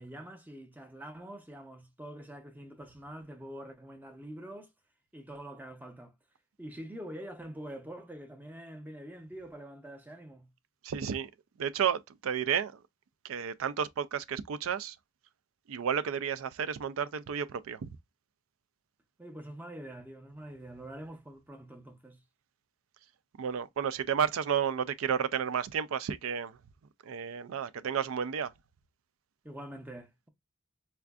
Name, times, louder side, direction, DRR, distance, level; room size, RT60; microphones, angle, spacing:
voice 1, 0.0-4.7 5.1-6.1 6.6-10.5 19.2-22.2 29.4-30.3, right 1 dB, 10° right, 0.6 m, -45 dB
voice 2, 10.8-11.3 11.6-12.8 13.2-15.0 15.7-17.9 23.4-26.6 27.0-28.5, right 7 dB, 80° right, 0.4 m, -32 dB
4.4 x 2.5 x 2.3 m
head